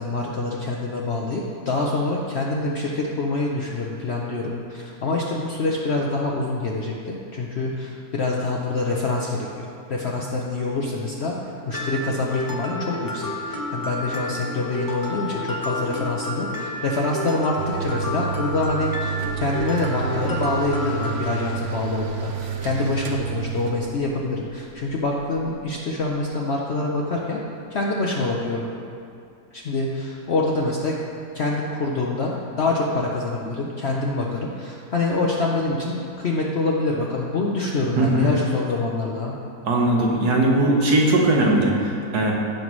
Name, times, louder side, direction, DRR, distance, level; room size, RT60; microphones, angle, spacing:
voice 1, 0.0-11.4 11.7-27.4 27.7-28.7 29.5-31.0 31.3-39.3, left 2 dB, 55° left, -2 dB, 0.8 m, -26 dB
Mallet percussion, 11.7-21.3, left 1 dB, 35° left, 0.3 m, -31 dB
sound 1, 17.6-26.2, right 8 dB, 60° right, 0.9 m, -31 dB
voice 2, 38.0-38.3 39.7-42.3, right 1 dB, 90° right, -1 dB, 1.8 m, -19 dB
15.5 x 5.6 x 3.1 m, 2.5 s
omnidirectional pair, 1.7 m